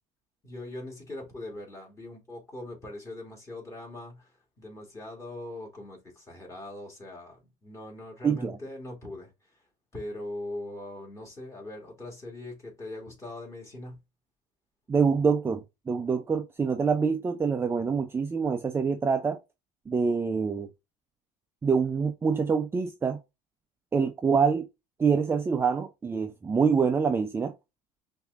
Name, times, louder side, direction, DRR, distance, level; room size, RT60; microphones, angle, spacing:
voice 1, 0.4-9.3 9.9-14.0, left 1 dB, 20° left, 2.4 m, -41 dB
voice 2, 8.2-8.6 14.9-19.4 19.9-20.7 21.6-23.2 23.9-24.7 25.0-27.5, right 5 dB, 15° right, 0.4 m, -25 dB
5.6 x 2.7 x 2.4 m
supercardioid pair, 115°, 15 cm